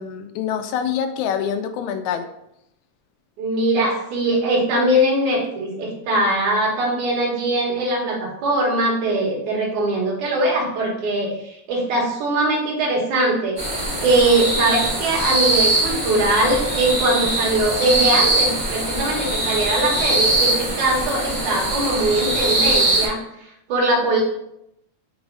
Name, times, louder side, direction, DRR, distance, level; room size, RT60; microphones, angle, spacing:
voice 1, 0.0-2.3, left 8 dB, 85° left, 8 dB, 2.0 m, -25 dB
voice 2, 3.4-23.2 23.7-24.2, right 1 dB, 75° right, -2 dB, 3.0 m, -21 dB
sound 1, 13.6-23.1, right 2 dB, 60° right, 0.4 m, -22 dB
6.3 x 4.0 x 4.7 m, 0.80 s
omnidirectional pair, 3.4 m